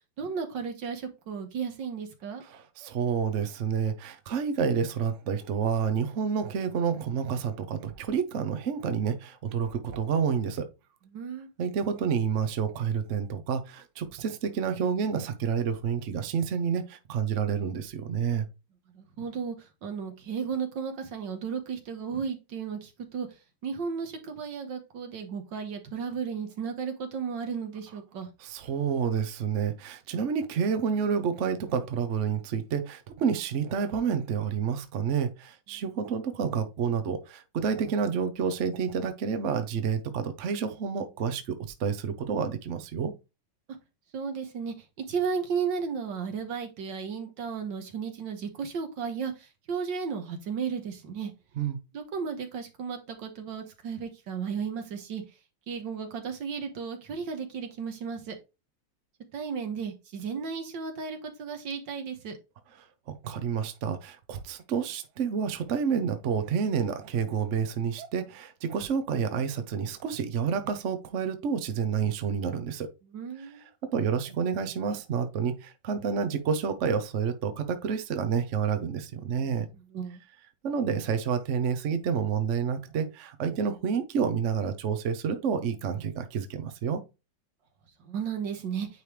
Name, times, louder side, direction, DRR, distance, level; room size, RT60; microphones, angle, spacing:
voice 1, 0.2-2.4 11.1-11.5 18.9-19.6 19.8-23.3 23.6-28.3 44.1-44.7 45.1-49.3 49.7-51.3 51.9-55.2 55.7-58.3 59.3-62.4 73.1-73.6 79.9-80.2 88.0-88.9, right 6 dB, 70° right, 1.8 m, -34 dB
voice 2, 2.4-10.7 11.6-18.5 28.4-43.1 51.6-51.8 63.2-72.9 73.4-79.7 80.6-87.0, right 6 dB, 55° right, 0.9 m, -29 dB
9.4 x 3.4 x 3.1 m
omnidirectional pair, 2.1 m